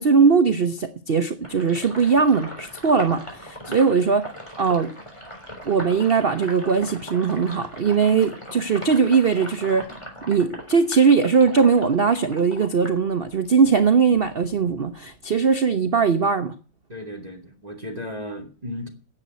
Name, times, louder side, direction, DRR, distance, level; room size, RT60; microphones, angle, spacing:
voice 1, 0.0-4.3 4.6-4.9 5.6-9.9 10.3-16.5, right 5 dB, 80° right, 0.5 m, -20 dB
Sink (filling or washing), 1.4-13.7 14.1-15.5, equal, 15° left, 3.8 m, -39 dB
voice 2, 16.9-18.9, left 1 dB, 20° right, 2.2 m, -35 dB
10.5 x 8.0 x 9.3 m
omnidirectional pair, 2.2 m